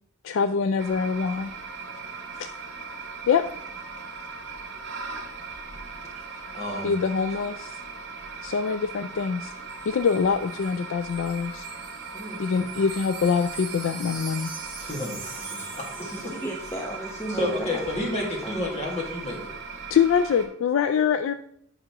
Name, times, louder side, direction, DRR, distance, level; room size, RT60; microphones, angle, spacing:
voice 1, 0.2-1.5 2.4-2.5 3.3-3.4 6.8-7.8 8.4-9.5 9.9-11.7 12.4-14.5 19.9-21.3, left 6 dB, 60° left, 10 dB, 0.3 m, -24 dB
sound 1, 0.8-20.5, right 4 dB, 55° right, 1.2 m, -39 dB
voice 2, 6.3-6.9 12.1-12.6 14.8-16.3 17.3-19.5, left 1 dB, 30° left, -2 dB, 1.9 m, -31 dB
Wind chime, 9.7-16.9 17.2-17.4, right 4 dB, 20° right, 2.5 m, -42 dB
voice 3, 16.1-18.8, right 1 dB, 10° left, 0 dB, 0.7 m, -36 dB
9.2 x 5.7 x 3.0 m, 0.69 s
head